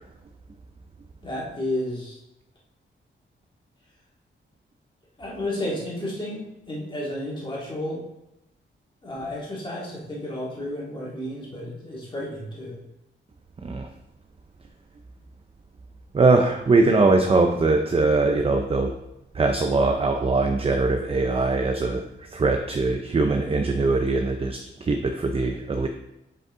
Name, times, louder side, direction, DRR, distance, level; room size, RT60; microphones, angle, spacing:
voice 1, 1.2-2.2 5.2-8.0 9.0-12.8, left 1 dB, 25° left, -5 dB, 2.1 m, -32 dB
voice 2, 16.1-18.9 19.3-22.0 22.3-25.9, right 3 dB, 30° right, 4 dB, 0.5 m, -21 dB
7.6 x 5.3 x 3.6 m, 0.89 s
wide cardioid pair, 150°, 21 cm